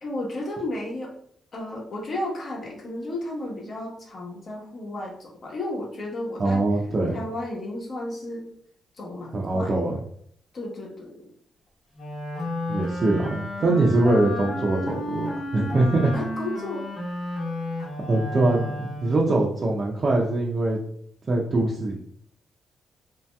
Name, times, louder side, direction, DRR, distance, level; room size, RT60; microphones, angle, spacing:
voice 1, 0.0-1.2 1.5-6.6 7.1-8.5 8.9-10.0 10.5-11.3 16.1-16.9, left 1 dB, 50° left, -2 dB, 1.0 m, -33 dB
voice 2, 6.4-7.2 9.3-9.9 12.7-16.1 18.1-20.8 21.3-22.0, right 2 dB, 40° right, -3 dB, 0.5 m, -23 dB
Wind instrument woodwind instrument, 11.9-19.4, left 1 dB, 80° left, 1.1 m, -32 dB
3.0 x 2.8 x 2.2 m, 0.63 s
cardioid pair, 85°, 0 cm